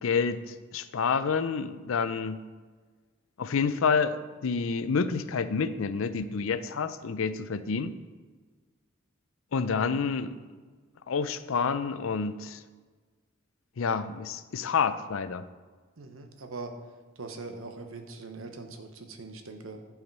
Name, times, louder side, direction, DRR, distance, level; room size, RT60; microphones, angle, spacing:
voice 1, 0.0-2.4 3.4-7.9 9.5-10.4 11.1-12.6 13.8-15.4, left 5 dB, 80° left, 13 dB, 0.5 m, -28 dB
voice 2, 16.0-16.8 17.2-19.9, right 3 dB, 80° right, 5 dB, 1.0 m, -41 dB
10.5 x 4.9 x 5.4 m, 1.4 s
head